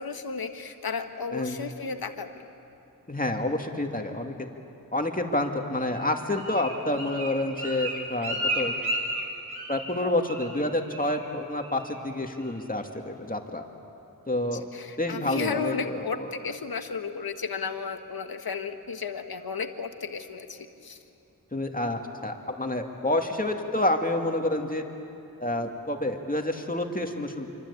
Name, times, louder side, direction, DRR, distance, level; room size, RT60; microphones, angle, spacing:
voice 1, 0.0-2.5 14.5-21.0, left 5 dB, 80° left, 7 dB, 1.5 m, -34 dB
voice 2, 3.1-4.3 4.9-8.8 9.7-13.6 14.3-14.7 15.0-16.3 21.5-24.8 25.4-27.5, left 1 dB, 25° left, 3 dB, 2.6 m, -28 dB
Bird, 5.9-10.0 10.3-10.6 10.9-11.3 11.6-12.0 12.4-12.5, right 1 dB, 80° right, 3.6 m, -33 dB
26.5 x 25.0 x 8.5 m, 2.8 s
cardioid pair, 50°, 36 cm